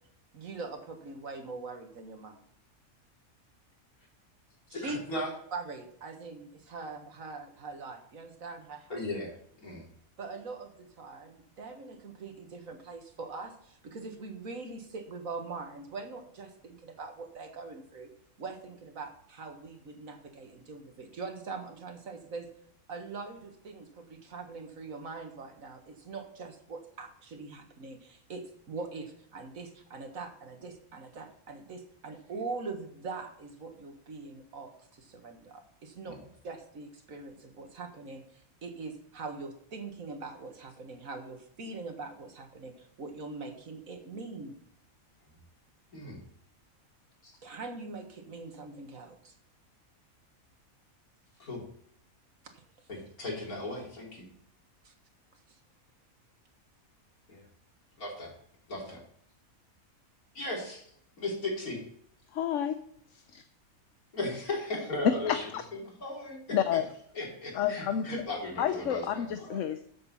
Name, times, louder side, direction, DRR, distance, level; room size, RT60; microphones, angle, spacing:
voice 1, 0.3-2.4 4.7-5.0 5.5-9.0 10.2-18.1 18.4-22.5 22.9-36.2 36.4-44.6 47.4-49.3 52.5-52.6 54.8-54.9, right 3 dB, 70° right, 5 dB, 2.0 m, -42 dB
voice 2, 4.7-5.3 8.9-9.3 9.6-9.9 36.1-36.2 45.9-46.2 47.2-47.3 51.4-51.7 52.9-54.3 57.3-57.5 58.0-58.3 58.7-59.0 60.3-60.8 61.2-61.8 64.1-66.8 67.1-69.6, left 2 dB, 80° left, -2 dB, 3.8 m, -37 dB
voice 3, 62.3-62.8 63.3-63.4 65.3-65.6 66.5-66.9 67.5-68.1 68.6-69.8, left 10 dB, 65° left, 9 dB, 1.0 m, -30 dB
13.0 x 7.7 x 4.2 m, 0.68 s
omnidirectional pair, 1.5 m